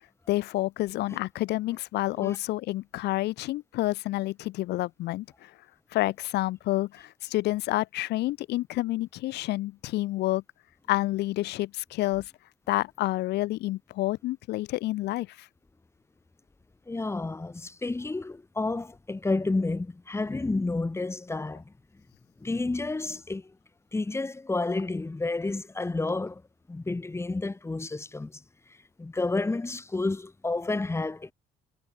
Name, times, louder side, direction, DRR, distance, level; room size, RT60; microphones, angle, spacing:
voice 1, 0.3-5.5 5.9-10.4 10.9-12.3 12.7-15.5, left 17 dB, 80° left, 3.7 m, -29 dB
voice 2, 16.9-21.7 22.4-23.5 23.9-26.4 26.7-28.4 29.0-31.3, left 3 dB, 15° left, 4.7 m, -30 dB
cardioid pair, 110°, 17 cm